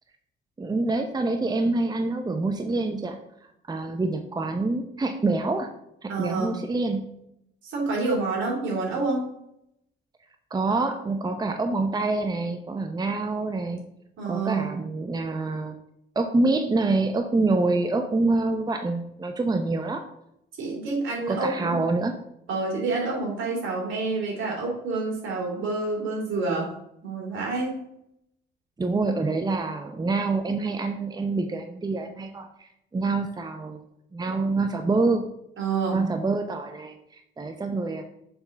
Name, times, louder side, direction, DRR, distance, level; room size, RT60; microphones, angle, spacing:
voice 1, 0.6-3.2 3.7-5.7 6.0-7.0 10.5-13.8 14.3-15.7 16.2-20.0 21.3-22.2 28.8-33.8 34.1-35.2 35.9-36.9 37.4-38.0, right 3 dB, 20° right, 6 dB, 0.7 m, -26 dB
voice 2, 6.1-6.6 7.6-9.2 14.2-14.6 20.6-21.7 22.5-26.7 27.0-27.8 35.6-36.1, right 3 dB, 75° right, -2 dB, 2.9 m, -28 dB
6.9 x 3.7 x 5.8 m, 0.78 s
cardioid pair, 90°, 20 cm